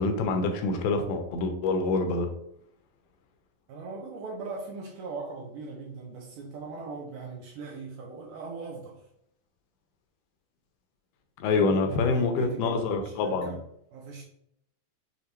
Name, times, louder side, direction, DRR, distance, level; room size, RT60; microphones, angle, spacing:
voice 1, 0.0-2.3 11.4-13.6, left 3 dB, 80° left, 5 dB, 2.2 m, -26 dB
voice 2, 3.7-9.0 11.6-13.6 13.9-14.2, right 4 dB, 80° right, -1 dB, 2.0 m, -40 dB
6.7 x 2.6 x 2.9 m, 0.73 s
omnidirectional pair, 4.5 m